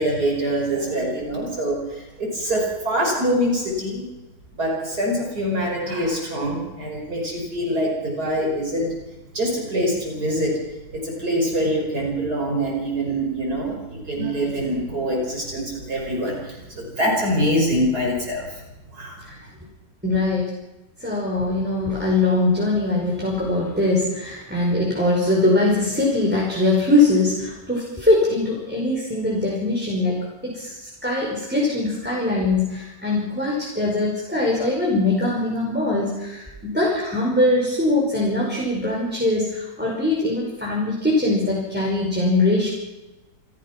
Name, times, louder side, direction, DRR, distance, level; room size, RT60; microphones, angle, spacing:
voice 1, 0.0-4.0 4.6-8.9 9.3-10.6 10.9-18.6 18.9-19.2, equal, 60° right, -2 dB, 6.0 m, -24 dB
voice 2, 20.0-20.5 21.0-30.2 30.4-36.5 36.7-42.7, left 2 dB, 5° right, -4 dB, 5.4 m, -22 dB
28.0 x 15.0 x 6.2 m, 1.1 s
omnidirectional pair, 1.9 m